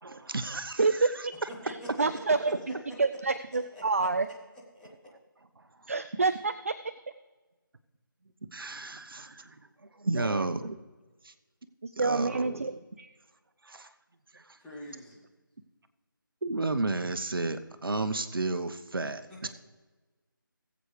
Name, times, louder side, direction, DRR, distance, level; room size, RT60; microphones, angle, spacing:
voice 1, 0.0-1.1 8.5-9.6 9.9-10.7 11.2-11.3 12.0-12.6 13.6-13.9 14.3-14.6 16.4-19.5, right 2 dB, 75° right, 10 dB, 1.0 m, -33 dB
voice 2, 0.8-1.3 1.6-4.3 5.9-6.7 10.2-10.5 11.8-13.1, right 3 dB, 40° right, 12 dB, 0.3 m, -28 dB
voice 3, 1.6-2.2 3.7-4.1 4.7-4.9 14.6-15.3 19.3-19.5, equal, 5° left, -6 dB, 1.2 m, -45 dB
19.5 x 8.1 x 3.3 m, 1.2 s
figure-of-eight pair, 170°, 12 cm